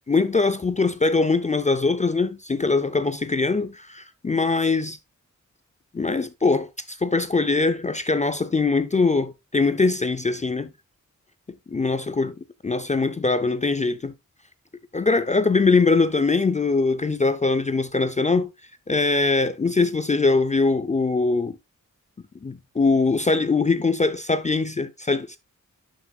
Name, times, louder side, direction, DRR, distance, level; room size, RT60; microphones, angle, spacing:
voice 1, 0.1-5.0 5.9-10.7 11.7-12.3 12.6-14.1 14.9-18.5 18.9-21.6 22.4-25.4, left 3 dB, 25° left, 0.4 m, -22 dB
11.0 x 5.8 x 2.2 m
wide cardioid pair, 160°, 31 cm